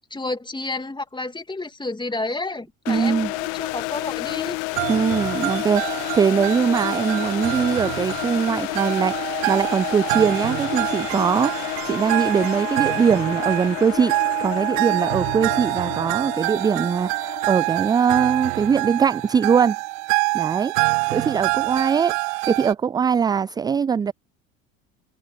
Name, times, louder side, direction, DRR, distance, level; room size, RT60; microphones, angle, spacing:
voice 1, 0.0-4.6, left 2 dB, 10° left, 2.9 m, -30 dB
sound 1, 2.9-19.7, left 37 dB, 60° left, 1.5 m, -31 dB
voice 2, 2.9-3.3 4.9-19.8 20.3-20.7 21.1-24.1, right 6 dB, 10° right, 0.3 m, -21 dB
sound 2, 4.8-22.7, right 38 dB, 55° right, 0.6 m, -26 dB
figure-of-eight pair, 60°, 40 cm